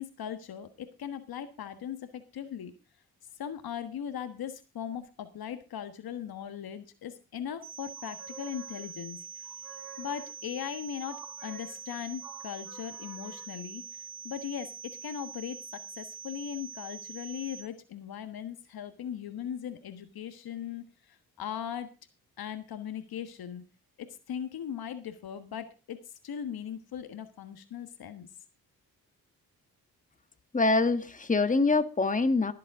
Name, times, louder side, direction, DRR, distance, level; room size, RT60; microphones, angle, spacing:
voice 1, 0.0-2.7 3.4-9.2 10.0-13.8 14.2-21.9 22.4-23.6 24.0-28.3, left 9 dB, 70° left, 10 dB, 1.4 m, -39 dB
sound 1, 7.6-17.6, right 7 dB, 85° right, 3.9 m, -44 dB
sound 2, 8.0-9.2 9.4-10.6 11.1-13.6, right 4 dB, 60° right, 3.6 m, -50 dB
voice 2, 30.5-32.5, left 3 dB, 20° left, 9 dB, 1.5 m, -25 dB
22.0 x 7.6 x 3.6 m, 0.29 s
cardioid pair, 70°, 37 cm